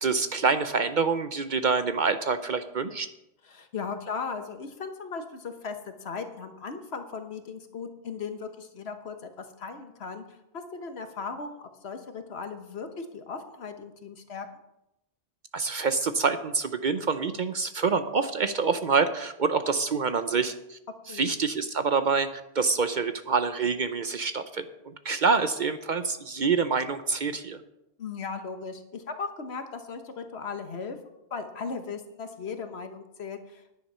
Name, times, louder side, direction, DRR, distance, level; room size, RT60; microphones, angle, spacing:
voice 1, 0.0-3.1 15.5-20.8 21.1-27.6, right 4 dB, 50° right, 10 dB, 0.7 m, -26 dB
voice 2, 3.4-14.5 21.1-21.3 28.0-31.0 31.3-33.6, left 5 dB, 65° left, 7 dB, 1.4 m, -37 dB
10.5 x 10.0 x 5.5 m, 0.89 s
omnidirectional pair, 1.1 m